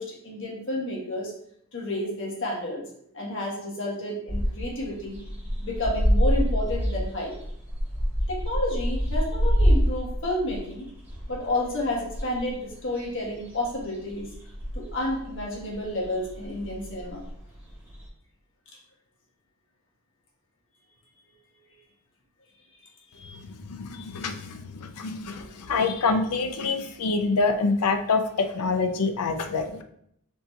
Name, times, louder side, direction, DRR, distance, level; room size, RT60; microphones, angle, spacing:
voice 1, 0.0-1.3 1.7-2.8 3.1-5.2 5.6-7.3 8.3-10.9 11.3-14.3 14.7-17.2 23.1-23.4, left 1 dB, 55° left, -2 dB, 1.5 m, -30 dB
sound 1, 4.3-18.1, equal, 10° right, 1.1 m, -27 dB
voice 2, 23.3-29.8, left 4 dB, 85° left, 7 dB, 0.6 m, -26 dB
4.5 x 2.9 x 4.0 m, 0.71 s
head